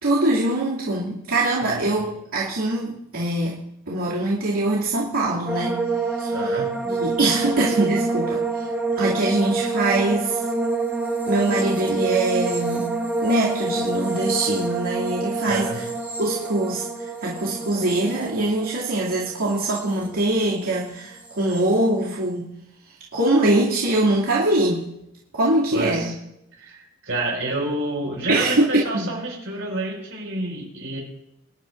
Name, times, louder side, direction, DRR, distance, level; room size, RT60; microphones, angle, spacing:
voice 1, 0.0-3.6 3.9-5.8 6.1-6.4 6.8-8.7 9.0-10.4 11.3-15.9 16.2-22.5 23.1-24.9 25.3-26.1 28.3-29.1, right 2 dB, 85° right, -8 dB, 2.6 m, -23 dB
voice 2, 1.7-2.1 6.3-6.7 15.4-15.8 25.7-26.1 26.5-31.0, right 2 dB, 65° right, -1 dB, 5.2 m, -29 dB
sound 1, 5.5-20.7 20.9-21.6, right 3 dB, 5° right, 1.7 m, -27 dB
24.5 x 11.0 x 2.6 m, 0.83 s
head